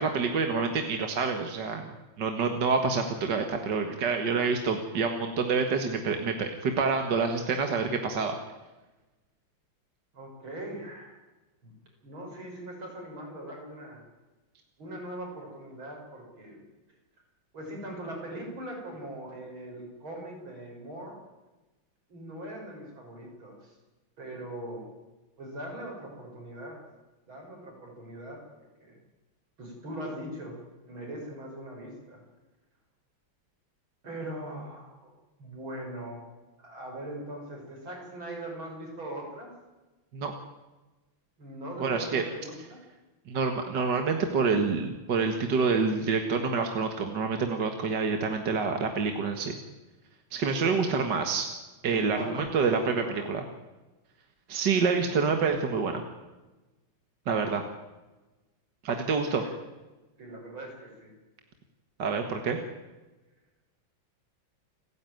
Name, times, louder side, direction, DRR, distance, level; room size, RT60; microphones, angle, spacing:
voice 1, 0.0-1.9 2.2-8.4 40.1-40.3 41.8-42.2 43.3-49.6 50.3-51.5 51.8-53.4 54.5-56.0 57.3-57.6 58.8-59.4 62.0-62.6, right 5 dB, 60° right, 5 dB, 2.1 m, -27 dB
voice 2, 10.1-11.2 11.6-11.7 12.0-14.0 14.8-16.6 17.5-21.2 22.1-23.7 24.2-24.9 25.4-26.8 27.3-29.0 29.6-32.2 34.0-35.1 35.4-36.2 36.6-39.5 41.4-42.8 50.5-50.9 52.0-53.3 59.1-59.5 60.2-61.1, right 1 dB, 85° right, 0 dB, 7.1 m, -41 dB
29.0 x 10.5 x 9.2 m, 1.1 s
omnidirectional pair, 2.2 m